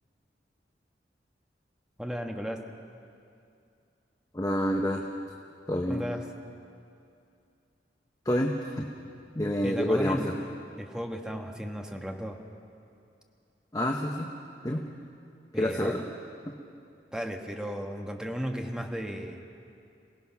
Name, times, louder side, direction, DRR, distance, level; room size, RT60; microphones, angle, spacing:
voice 1, 2.0-2.6 5.9-6.2 9.6-10.4 10.8-12.4 15.5-16.0 17.1-19.4, equal, 5° right, 2 dB, 1.4 m, -35 dB
voice 2, 4.3-5.0 5.7-6.1 8.2-8.9 9.3-10.3 13.7-14.3 14.6-14.8 15.6-16.0 16.5-16.6, equal, 20° left, 1 dB, 1.0 m, -28 dB
27.0 x 17.5 x 5.9 m, 2.5 s
head